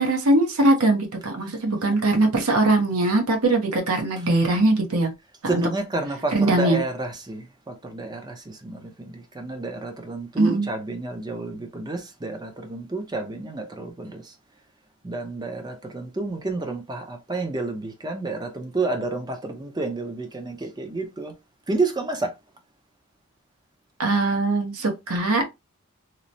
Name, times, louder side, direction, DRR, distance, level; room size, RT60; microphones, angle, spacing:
voice 1, 0.0-5.1 5.4-5.7 6.3-6.8 10.4-10.7 24.0-25.5, right 2 dB, 70° right, 0.9 m, -21 dB
voice 2, 5.4-14.3 15.0-21.3 21.7-22.3, right 3 dB, 20° right, 0.5 m, -30 dB
3.0 x 2.0 x 2.6 m
head